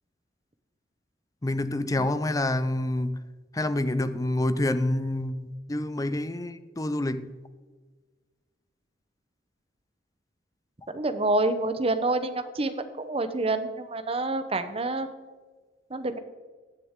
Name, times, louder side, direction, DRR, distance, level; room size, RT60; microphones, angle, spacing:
voice 1, 1.4-3.3 3.5-7.4, left 1 dB, 20° left, 0.5 m, -28 dB
voice 2, 10.9-15.1 15.9-16.2, right 2 dB, 30° right, 0.8 m, -28 dB
16.5 x 9.5 x 3.7 m
head